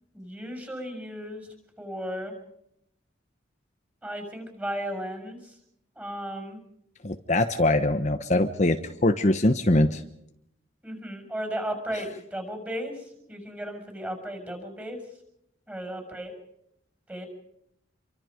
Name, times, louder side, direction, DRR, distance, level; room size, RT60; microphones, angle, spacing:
voice 1, 0.1-1.5 1.8-2.3 4.0-5.6 6.0-6.6 10.8-15.0 15.7-16.3 17.1-17.3, equal, 10° right, 5 dB, 6.4 m, -35 dB
voice 2, 7.0-10.0, left 1 dB, 40° left, 7 dB, 1.1 m, -23 dB
28.0 x 24.5 x 5.2 m, 0.76 s
head